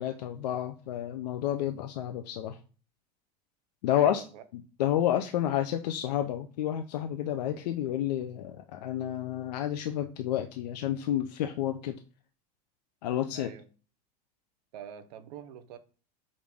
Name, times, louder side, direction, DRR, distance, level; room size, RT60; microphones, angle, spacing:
voice 1, 0.0-2.6 3.8-4.2 4.5-12.0 13.0-13.5, left 11 dB, 85° left, 0.5 m, -30 dB
voice 2, 3.9-4.4 13.3-13.6 14.7-15.8, right 9 dB, 80° right, 0.7 m, -45 dB
5.0 x 2.5 x 3.4 m
supercardioid pair, 130°, 21 cm